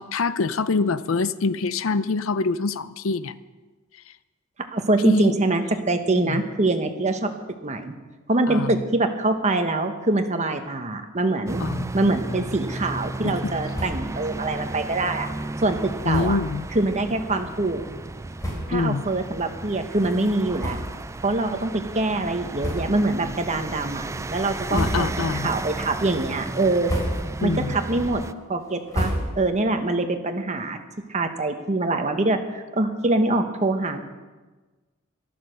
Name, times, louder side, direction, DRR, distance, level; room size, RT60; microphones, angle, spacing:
voice 1, 0.0-3.3 5.0-5.3 6.1-6.4 8.5-8.8 11.6-11.9 13.2-13.5 16.0-16.6 18.7-19.0 24.7-25.5 27.4-27.8, left 4 dB, 75° left, 14 dB, 0.6 m, -25 dB
voice 2, 4.7-7.3 7.6-7.9 8.3-11.6 11.9-15.3 15.6-16.4 16.7-17.8 18.7-20.8 21.2-26.9 27.4-28.2 28.5-30.8 31.1-34.0, right 2 dB, 35° right, 6 dB, 1.3 m, -24 dB
sound 1, 11.4-28.3, right 2 dB, 15° right, 0.3 m, -34 dB
sound 2, 13.7-14.2 14.5-14.6 14.9-15.1 16.1-16.5 17.2-17.3 18.0-18.1 18.4-18.9 19.5-19.6 20.5-21.2 21.6-21.7 22.6-23.2 23.6-24.0 24.5-25.4 25.8-26.2 26.6-27.5 27.8-29.7, equal, 15° left, 4.2 m, -31 dB
13.0 x 12.5 x 6.5 m, 1.3 s
head